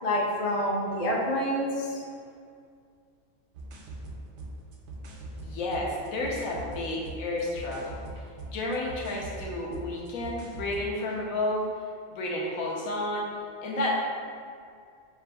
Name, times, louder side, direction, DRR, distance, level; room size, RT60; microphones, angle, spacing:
voice 1, 0.0-2.0, equal, 50° left, -4 dB, 0.4 m, -27 dB
sound 1, 3.5-10.9, right 1 dB, 65° right, 0.7 m, -42 dB
voice 2, 5.4-8.0 8.5-11.7 12.1-13.4 13.6-13.9, left 1 dB, 70° left, -3 dB, 1.0 m, -31 dB
6.5 x 2.5 x 2.2 m, 2.2 s
omnidirectional pair, 1.6 m